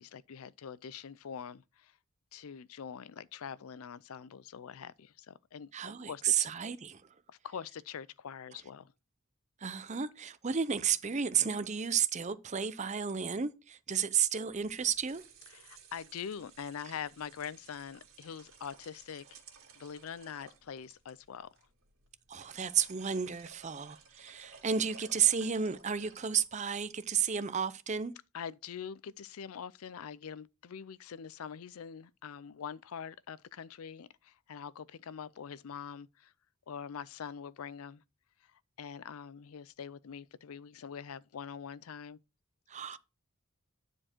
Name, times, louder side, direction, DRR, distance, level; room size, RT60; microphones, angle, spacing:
voice 1, 0.0-2.0 2.3-5.7 6.1-6.2 7.4-8.9 15.5-19.4 19.8-21.5 28.3-36.3 36.7-38.0 38.4-42.2 42.9-43.0, left 7 dB, 85° left, 0.5 m, -44 dB
voice 2, 5.7-7.0 9.6-15.2 22.3-28.1 42.7-43.0, right 7 dB, 35° right, 0.6 m, -32 dB
sound 1, 14.5-26.8, right 5 dB, 70° right, 2.3 m, -58 dB
9.9 x 4.5 x 4.4 m
head